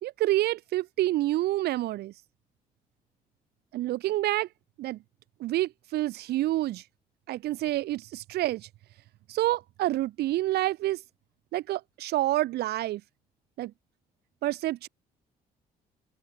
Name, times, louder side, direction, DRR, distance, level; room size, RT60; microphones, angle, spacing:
voice 1, 0.0-2.1 3.7-4.5 4.8-5.0 5.4-6.8 7.3-8.7 9.3-11.0 11.5-13.0 13.6-13.7 14.4-14.9, right 15 dB, 60° right, 0.4 m, -28 dB
hypercardioid pair, 60°, 19 cm